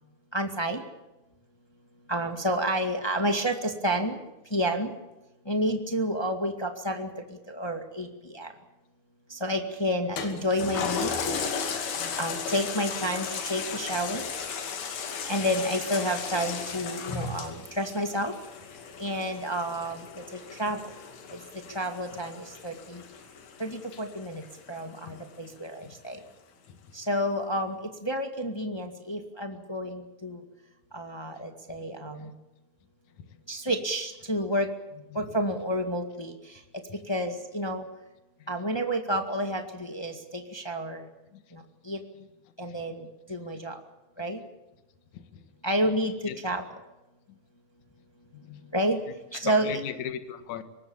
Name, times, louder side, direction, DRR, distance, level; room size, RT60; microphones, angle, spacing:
voice 1, 0.3-0.8 2.1-4.2 4.5-4.9 5.4-7.1 7.5-8.1 8.3-8.5 9.3-11.1 12.2-14.3 15.2-18.3 19.0-20.0 20.6-20.8 21.7-23.0 23.6-24.4 24.7-26.2 26.9-30.4 30.9-32.3 33.5-34.7 35.1-36.4 37.1-37.8 38.5-41.0 41.9-42.0 42.6-43.8 44.2-44.4 45.6-46.1 46.4-46.6 48.7-49.0 49.3-49.8, equal, 20° left, 5 dB, 0.7 m, -30 dB
Toilet flush, 10.2-25.0 25.5-25.6, left 6 dB, 80° left, 4.4 m, -35 dB
voice 2, 25.8-26.2 26.7-26.8 32.2-32.3 33.2-33.3 35.1-35.2 36.9-37.0 38.4-38.5 41.3-41.4 42.1-42.3 42.6-42.7 45.1-45.4 46.3-46.4 47.3-47.4 48.3-48.7 49.4-50.6, left 9 dB, 60° left, 9 dB, 2.7 m, -40 dB
24.0 x 20.0 x 7.2 m, 1.0 s
omnidirectional pair, 4.2 m